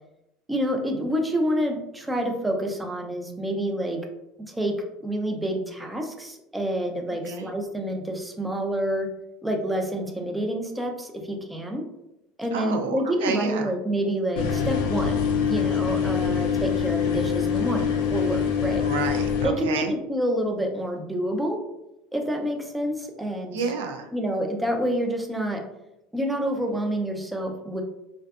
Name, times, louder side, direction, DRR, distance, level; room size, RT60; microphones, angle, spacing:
voice 1, 0.5-4.0 4.4-4.7 5.0-9.1 9.4-11.8 12.4-18.8 19.4-21.6 22.1-23.6 24.1-25.6 26.1-27.8, equal, 10° right, 2 dB, 0.4 m, -28 dB
voice 2, 12.5-13.7 18.8-19.9 23.5-24.1, right 5 dB, 90° right, 5 dB, 0.3 m, -30 dB
sound 1, 14.4-19.5, left 7 dB, 80° left, 0.3 m, -24 dB
2.5 x 2.2 x 2.3 m, 0.89 s
supercardioid pair, 100°, 0 cm